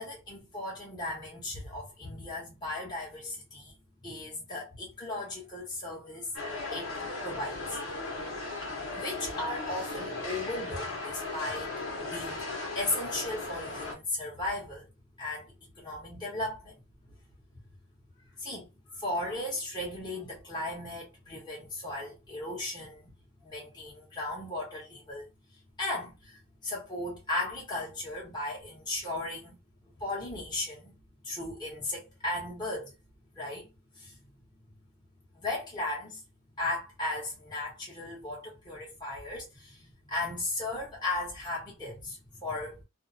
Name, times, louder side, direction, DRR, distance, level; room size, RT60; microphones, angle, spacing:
voice 1, 0.0-3.7 4.0-6.3 6.7-6.9 7.2-7.8 8.9-11.7 12.0-12.5 12.7-14.9 15.2-16.8 18.4-18.7 19.0-23.0 23.4-25.3 25.8-29.5 30.0-31.0 31.2-32.9 33.3-34.2 35.3-36.2 36.6-42.8, left 2 dB, 20° left, 1.1 m, -36 dB
sound 1, 6.3-13.9, left 3 dB, 80° left, 1.1 m, -37 dB
2.7 x 2.2 x 2.6 m
head